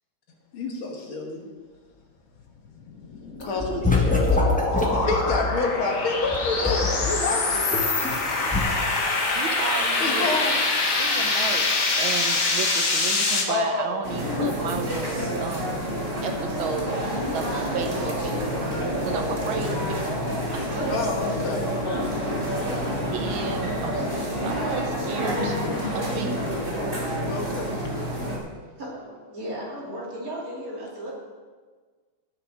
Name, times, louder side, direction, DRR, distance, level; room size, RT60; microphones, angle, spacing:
voice 1, 0.5-1.5 3.4-7.7 10.0-10.5 13.5-14.0 20.9-22.3 27.3-28.1, left 3 dB, 70° left, 1 dB, 2.3 m, -29 dB
sound 1, 2.9-13.4, left 3 dB, 40° left, 1.5 m, -25 dB
sound 2, 3.4-5.4 6.2-8.2 8.5-8.6, left 3 dB, 5° left, 1.2 m, -24 dB
voice 2, 9.3-10.6 11.0-15.9 16.2-20.1 20.5-20.9 23.1-25.6 25.9-26.4, right 6 dB, 70° right, 5 dB, 1.5 m, -33 dB
sound 3, 14.0-28.4, equal, 25° right, 2.4 m, -28 dB
voice 3, 28.8-31.1, equal, 40° right, -4 dB, 3.2 m, -35 dB
17.5 x 6.9 x 4.9 m, 1.5 s
omnidirectional pair, 2.4 m